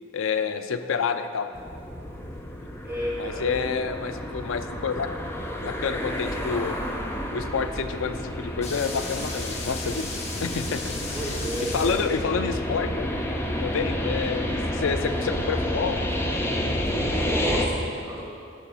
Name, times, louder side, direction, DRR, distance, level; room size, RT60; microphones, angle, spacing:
voice 1, 0.1-1.5 3.2-5.1 5.6-6.8 7.3-10.1 10.4-11.0 11.7-13.1 13.6-16.0, left 5 dB, 90° left, 10 dB, 0.4 m, -28 dB
sound 1, 1.5-17.7, left 1 dB, 15° left, 0.6 m, -30 dB
voice 2, 2.8-3.6 11.1-12.0 17.1-18.2, equal, 10° right, -8 dB, 2.1 m, -32 dB
sound 2, 8.6-12.5, left 3 dB, 35° left, 1.0 m, -36 dB
9.3 x 4.1 x 6.0 m, 2.4 s
head